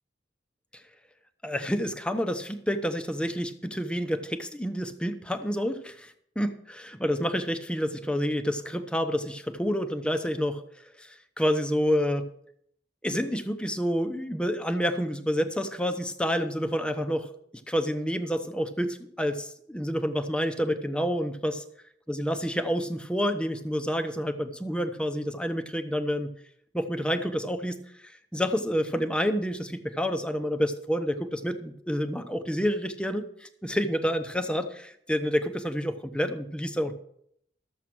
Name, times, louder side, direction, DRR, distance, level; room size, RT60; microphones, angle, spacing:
voice 1, 1.4-10.6 11.0-12.3 13.0-17.3 17.7-21.6 22.1-26.3 26.7-36.9, equal, 5° left, 7 dB, 0.8 m, -29 dB
13.5 x 7.2 x 6.1 m, 0.70 s
head